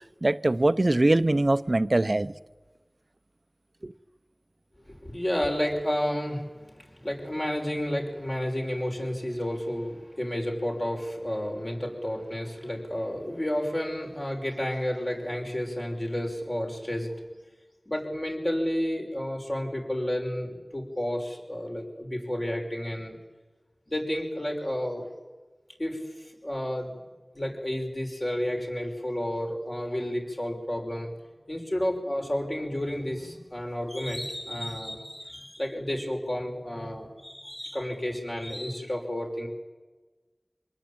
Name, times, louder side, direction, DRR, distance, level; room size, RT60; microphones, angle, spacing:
voice 1, 0.2-2.3 3.8-3.9, right 2 dB, 50° right, 0.7 m, -22 dB
voice 2, 4.9-17.1 17.9-23.2 23.9-25.1 25.8-26.9 27.3-31.1 31.5-39.5, equal, 35° left, 5.9 m, -31 dB
26.0 x 19.5 x 8.9 m
wide cardioid pair, 45°, 0 cm